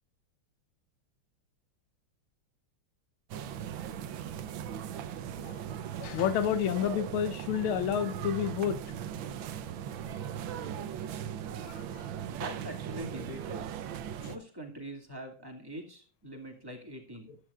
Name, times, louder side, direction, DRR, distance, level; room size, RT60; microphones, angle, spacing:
sound 1, 3.3-14.4, right 9 dB, 70° right, 1.5 m, -38 dB
voice 1, 6.0-8.8 10.6-10.7 11.6-12.1, left 9 dB, 80° left, 1.7 m, -30 dB
voice 2, 12.3-13.7 14.2-17.4, equal, 10° right, 2.1 m, -43 dB
14.5 x 11.0 x 2.4 m
omnidirectional pair, 2.3 m